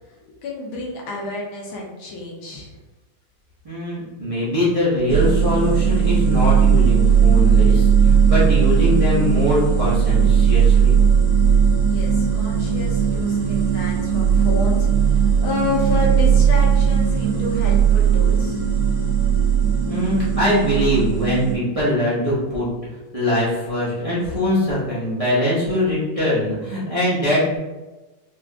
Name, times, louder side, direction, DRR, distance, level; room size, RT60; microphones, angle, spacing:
voice 1, 0.1-2.8 11.8-18.6, left 2 dB, 75° left, -3 dB, 1.6 m, -30 dB
voice 2, 3.6-11.0 19.9-22.7 23.1-27.6, left 1 dB, 30° right, -10 dB, 0.6 m, -22 dB
sound 1, 5.1-21.5, right 7 dB, 80° right, 1.7 m, -17 dB
4.7 x 2.5 x 2.3 m, 1.1 s
omnidirectional pair, 2.3 m